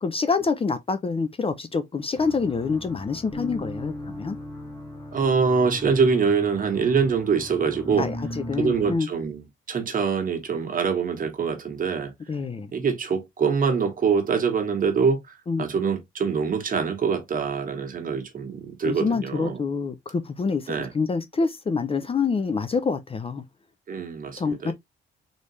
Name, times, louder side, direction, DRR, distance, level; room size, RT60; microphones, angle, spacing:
voice 1, 0.0-4.4 8.0-9.1 12.3-12.7 15.5-15.7 18.8-23.4 24.4-24.7, left 4 dB, 30° left, 0.6 m, -26 dB
sound 1, 2.1-9.0, left 1 dB, 15° left, 1.8 m, -38 dB
voice 2, 5.1-8.1 8.6-12.1 12.7-19.6 20.7-20.9 23.9-24.7, right 5 dB, 45° right, 1.6 m, -24 dB
4.0 x 3.5 x 3.1 m
cardioid pair, 90°, 20 cm